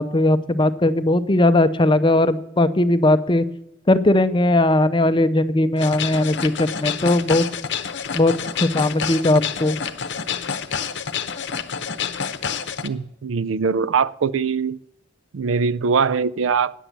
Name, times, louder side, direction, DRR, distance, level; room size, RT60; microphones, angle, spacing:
voice 1, 0.0-3.4 3.9-7.4 8.1-8.3 8.6-9.8, left 1 dB, 25° left, 12 dB, 0.6 m, -18 dB
sound 1, 5.8-12.9, left 7 dB, 65° left, 0.8 m, -28 dB
voice 2, 12.8-14.8 15.3-16.7, right 5 dB, 85° right, 17 dB, 0.4 m, -22 dB
10.0 x 7.6 x 8.1 m, 0.79 s
head